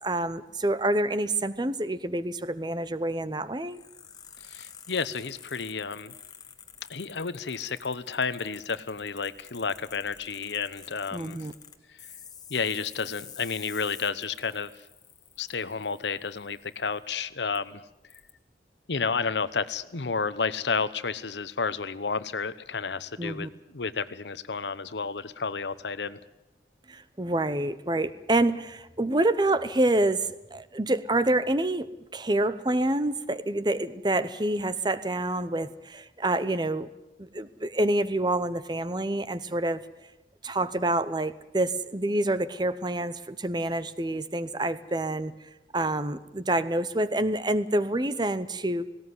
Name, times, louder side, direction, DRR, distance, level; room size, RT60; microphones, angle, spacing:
voice 1, 0.0-3.8 11.1-11.5 23.2-23.5 26.9-36.9 37.2-39.8 40.4-45.3 45.7-48.8, right 1 dB, 25° right, 14 dB, 0.8 m, -27 dB
sound 1, 3.7-17.1 17.5-17.6 18.1-18.3, left 8 dB, 20° left, 1.3 m, -49 dB
voice 2, 4.4-6.1 6.9-11.4 12.5-14.7 15.4-17.8 18.9-23.5 23.7-26.2, left 5 dB, 80° left, 15 dB, 0.9 m, -31 dB
18.5 x 18.0 x 9.6 m, 0.94 s
head